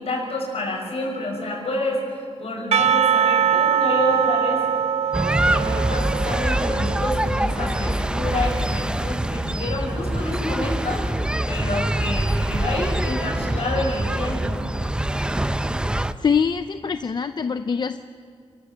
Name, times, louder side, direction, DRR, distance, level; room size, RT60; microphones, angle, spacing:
voice 1, 0.0-4.6 5.4-11.2 11.5-14.6, left 1 dB, 65° left, 0 dB, 6.1 m, -28 dB
Percussion / Church bell, 2.7-7.8, right 8 dB, 75° right, 0.6 m, -22 dB
sound 1, 5.1-16.1, right 1 dB, 10° right, 0.6 m, -24 dB
voice 2, 16.2-18.0, left 6 dB, 40° left, 10 dB, 0.5 m, -23 dB
30.0 x 13.5 x 7.4 m, 2.3 s
wide cardioid pair, 140°, 11 cm